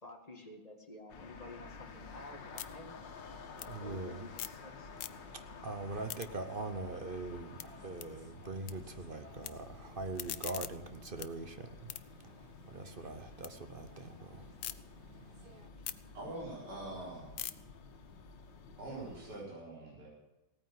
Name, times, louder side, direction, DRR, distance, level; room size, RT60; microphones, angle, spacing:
voice 1, 0.0-3.0 3.6-4.9, left 2 dB, 20° left, 3 dB, 2.0 m, -51 dB
sound 1, 1.1-19.4, left 4 dB, 90° left, 2.1 m, -52 dB
sound 2, 1.7-4.7 4.9-5.5 5.8-8.7 9.0-9.5 9.9-13.5 13.9-14.7 15.2-19.4, left 12 dB, 65° left, 1.1 m, -47 dB
voice 2, 3.3-4.3 4.8-15.7, right 3 dB, 40° right, 9 dB, 0.9 m, -43 dB
voice 3, 16.1-17.5 18.8-20.1, right 2 dB, 65° right, -4 dB, 4.7 m, -44 dB
17.0 x 9.3 x 7.9 m, 1.0 s
omnidirectional pair, 1.9 m